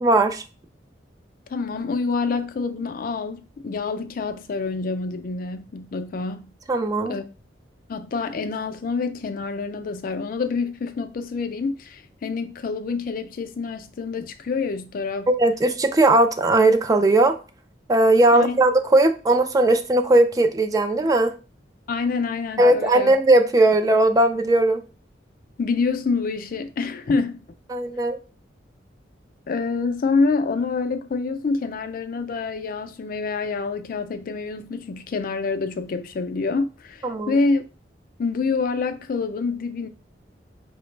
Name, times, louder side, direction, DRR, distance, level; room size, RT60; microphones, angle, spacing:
voice 1, 0.0-0.4 6.7-7.2 15.3-17.4 17.9-21.3 22.6-24.8 27.7-28.2 37.0-37.3, right 2 dB, 20° right, 0.3 m, -18 dB
voice 2, 1.5-6.5 7.1-7.3 7.9-15.3 18.3-18.6 21.9-23.1 25.6-27.4 29.5-37.6 38.2-39.9, left 4 dB, 50° left, 0.4 m, -27 dB
4.8 x 2.1 x 3.1 m
head